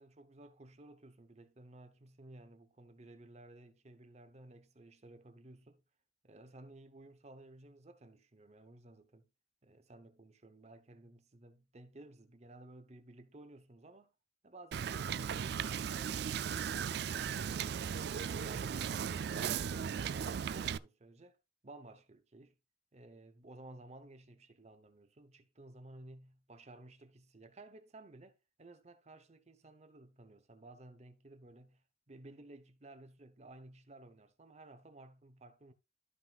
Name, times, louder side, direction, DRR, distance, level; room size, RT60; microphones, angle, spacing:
voice 1, 0.0-5.8 6.2-9.3 9.6-14.1 14.4-16.2 16.6-17.6 18.3-21.4 21.6-22.5 22.9-35.7, right 2 dB, 35° right, 0.8 m, -55 dB
Wind / Boat Water vehicle, 14.7-20.8, right 7 dB, 60° right, 0.3 m, -37 dB
12.5 x 5.8 x 2.4 m
head